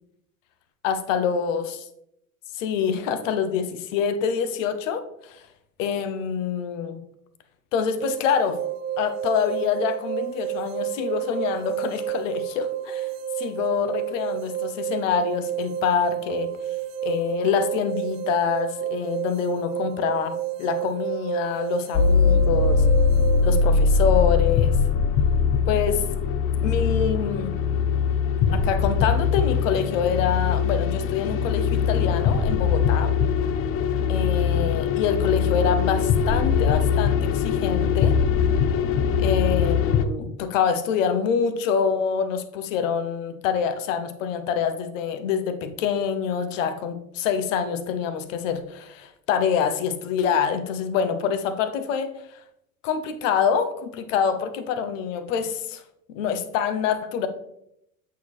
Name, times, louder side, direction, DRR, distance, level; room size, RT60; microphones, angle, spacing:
voice 1, 0.8-1.8 2.5-5.5 5.8-7.0 7.7-8.6 9.0-13.1 13.4-16.5 17.0-22.8 23.4-24.7 25.7-26.0 26.6-27.6 28.5-33.1 34.1-38.1 39.2-52.4 52.8-55.8 56.1-57.3, left 7 dB, 65° left, 10 dB, 0.9 m, -26 dB
sound 1, 8.0-23.6, right 12 dB, 65° right, 0.7 m, -30 dB
sound 2, 21.9-40.0, left 6 dB, 35° left, 0.5 m, -21 dB
8.1 x 4.6 x 3.1 m, 0.78 s
figure-of-eight pair, 70°, 41 cm